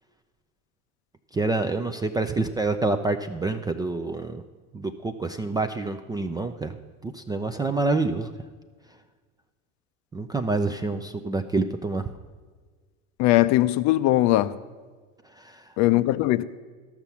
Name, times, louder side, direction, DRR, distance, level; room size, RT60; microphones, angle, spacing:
voice 1, 1.3-4.4 4.7-6.8 7.0-8.3 10.1-12.1 15.4-15.6, right 3 dB, 10° right, 0.3 m, -27 dB
voice 2, 13.2-14.6 15.8-16.4, left 16 dB, 50° left, 0.5 m, -20 dB
13.0 x 6.0 x 6.9 m
hypercardioid pair, 90°, 38 cm